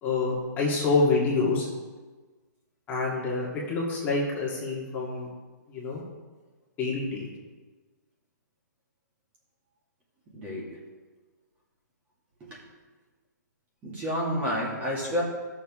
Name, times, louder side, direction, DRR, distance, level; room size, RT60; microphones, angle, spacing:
voice 1, 0.0-1.7 2.9-5.3 5.7-6.0 6.8-7.3, left 3 dB, 20° left, -5 dB, 2.1 m, -27 dB
voice 2, 10.3-10.7 12.4-12.6 13.8-15.2, equal, 15° right, -5 dB, 2.4 m, -30 dB
15.0 x 6.8 x 3.7 m, 1.3 s
hypercardioid pair, 155°, 10 cm